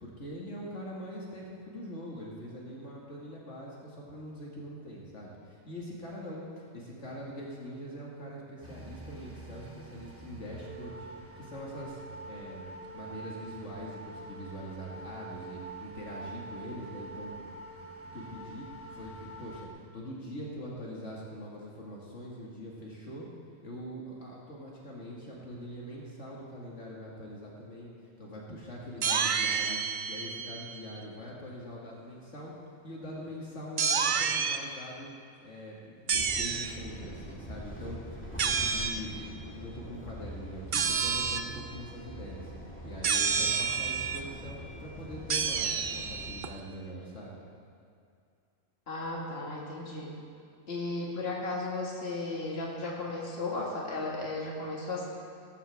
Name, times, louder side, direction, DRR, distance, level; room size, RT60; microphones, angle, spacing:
voice 1, 0.0-5.3 5.7-6.4 6.7-11.1 11.4-12.0 12.3-12.7 12.9-17.3 18.1-18.7 18.9-19.7 19.9-23.3 23.6-27.9 28.2-29.8 30.1-32.5 32.8-35.1 35.4-38.0 38.4-42.4 42.8-47.4, equal, 65° left, -4 dB, 2.2 m, -43 dB
sound 1, 8.6-19.7, right 2 dB, 10° right, 0.9 m, -45 dB
sound 2, 29.0-31.0 33.8-34.6 36.1-36.8 38.4-39.0 40.7-41.5 43.0-44.2 45.3-46.5, right 6 dB, 50° right, 0.6 m, -29 dB
sound 3, 36.1-46.3, equal, 10° left, 1.8 m, -44 dB
voice 2, 48.9-50.1 50.7-55.1, left 2 dB, 50° left, -3 dB, 2.2 m, -35 dB
17.5 x 14.0 x 3.5 m, 2.4 s
omnidirectional pair, 1.3 m